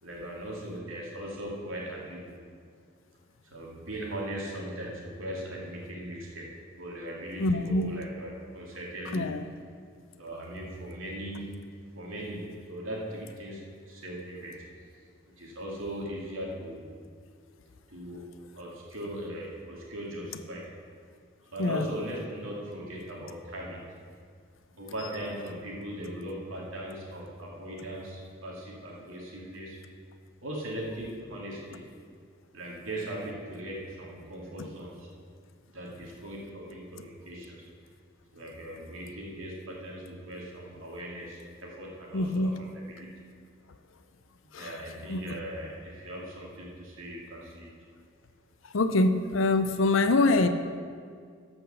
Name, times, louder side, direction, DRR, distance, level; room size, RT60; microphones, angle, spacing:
voice 1, 0.0-2.4 3.5-6.5 6.8-9.3 10.2-11.6 11.9-14.9 15.4-16.9 17.9-18.3 18.6-20.7 21.5-23.8 24.8-29.8 30.4-31.8 32.5-35.1 35.7-37.7 38.3-43.1 44.5-47.7, right 1 dB, 85° right, -3 dB, 2.6 m, -39 dB
voice 2, 7.4-7.9 9.1-9.4 21.6-21.8 42.1-42.6 44.5-44.8 45.1-45.3 48.7-50.5, left 2 dB, 75° left, 9 dB, 0.6 m, -25 dB
13.0 x 5.8 x 6.8 m, 2.1 s
head